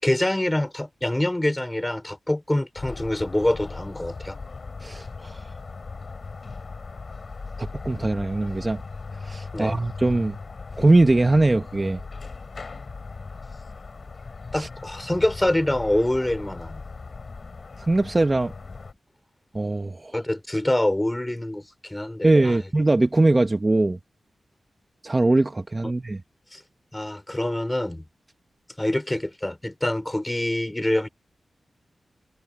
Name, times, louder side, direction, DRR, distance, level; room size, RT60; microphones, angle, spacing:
voice 1, 0.0-4.4 9.5-9.8 14.5-16.8 20.1-22.6 26.5-26.6 26.9-28.0 28.8-31.1, left 1 dB, 15° left, 5.1 m, -25 dB
sound 1, 2.8-18.9, left 4 dB, 50° left, 6.9 m, -38 dB
voice 2, 4.8-5.4 7.6-8.8 9.2-10.4 10.8-12.0 14.6-14.7 17.9-18.5 19.5-20.1 22.2-24.0 25.0-26.2, right 2 dB, 30° right, 1.5 m, -21 dB
cardioid pair, 70°, 0 cm